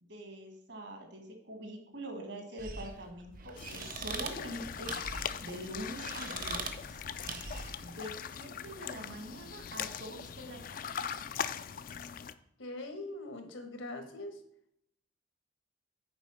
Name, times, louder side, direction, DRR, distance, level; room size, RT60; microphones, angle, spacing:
voice 1, 0.0-5.0 5.4-7.0 7.8-10.8, right 1 dB, 65° right, 4 dB, 1.8 m, -44 dB
sound 1, 2.6-7.8, right 4 dB, 45° right, 0.8 m, -42 dB
sound 2, 3.6-12.3, left 8 dB, 45° left, 0.3 m, -40 dB
voice 2, 12.6-14.4, left 2 dB, 85° left, 6 dB, 1.4 m, -42 dB
8.0 x 4.7 x 5.6 m, 0.73 s
head